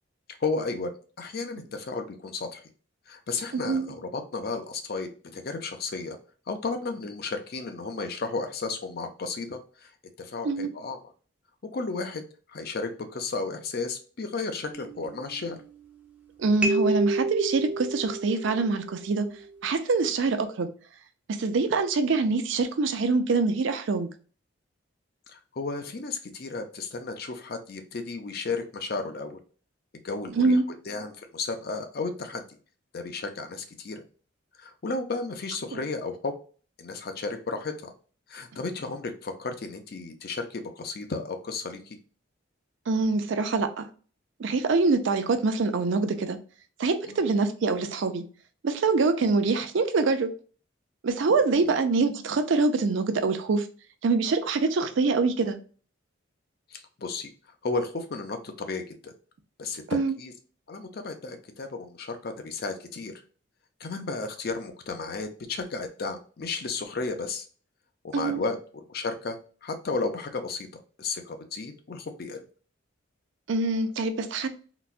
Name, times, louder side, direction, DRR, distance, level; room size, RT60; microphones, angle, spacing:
voice 1, 0.4-0.9 1.2-2.6 3.1-6.2 6.5-9.9 10.2-11.0 11.7-12.2 12.5-15.6 25.3-29.4 30.0-30.6 30.9-32.4 32.9-34.0 34.6-36.3 36.8-37.9 38.3-42.0 47.1-47.2 51.6-51.7 56.7-57.3 57.6-59.1 59.6-60.3 60.7-63.1 63.8-67.5 68.0-68.6 68.9-72.4, left 3 dB, 50° left, 6 dB, 0.5 m, -33 dB
voice 2, 3.5-3.9 10.4-10.7 16.4-19.3 19.6-20.7 21.3-24.1 30.4-30.6 35.7-35.8 42.9-43.9 44.4-46.4 46.8-48.2 48.6-50.3 51.0-53.7 54.0-55.6 59.9-60.1 68.1-68.4 73.5-74.5, right 3 dB, 65° right, 8 dB, 0.4 m, -25 dB
sound 1, 14.7-16.1 16.6-19.3, right 2 dB, 5° right, 0.5 m, -31 dB
3.9 x 2.2 x 2.4 m, 0.39 s
head